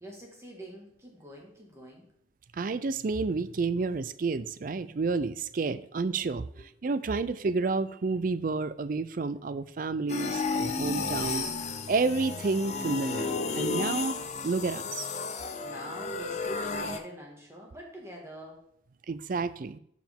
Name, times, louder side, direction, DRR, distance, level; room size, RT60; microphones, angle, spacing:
voice 1, 0.0-2.1 6.6-6.7 15.6-18.6, right 1 dB, 15° right, -1 dB, 1.8 m, -45 dB
voice 2, 2.5-6.5 6.8-11.5 11.9-14.2 14.4-15.1 19.1-19.8, right 4 dB, 45° right, 14 dB, 0.4 m, -30 dB
sound 1, 10.1-17.0, left 4 dB, 35° left, 0.6 m, -33 dB
11.5 x 5.0 x 3.6 m, 0.70 s
head